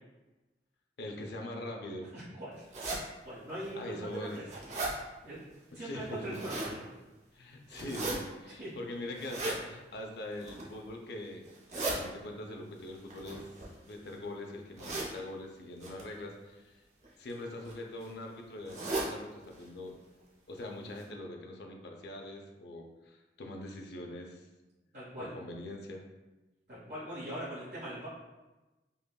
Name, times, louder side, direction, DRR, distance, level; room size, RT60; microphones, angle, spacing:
voice 1, 1.0-2.1 3.8-4.4 5.7-6.3 7.3-11.5 11.7-13.5 13.8-16.8 17.2-19.9 20.5-24.5 25.2-26.0, left 1 dB, 70° left, 2 dB, 0.5 m, -42 dB
voice 2, 2.1-2.6 3.2-4.4 4.9-5.4 5.7-6.9 8.6-8.9 24.9-25.3 26.7-28.1, right 1 dB, 70° right, -11 dB, 1.3 m, -41 dB
sound 1, 2.7-3.0 3.6-3.7 4.2-4.9 6.1-6.7 7.7-8.1 9.1-9.6 10.3-10.7 11.4-12.0 13.1-14.1 14.8-15.1 15.8-16.0 17.0-17.3 17.6-17.7 18.0-18.1 18.6-19.1 19.5-19.6 19.9-20.0 20.6-20.7 21.0-21.1, right 2 dB, 40° right, 0.7 m, -36 dB
5.4 x 2.3 x 2.2 m, 1.1 s
head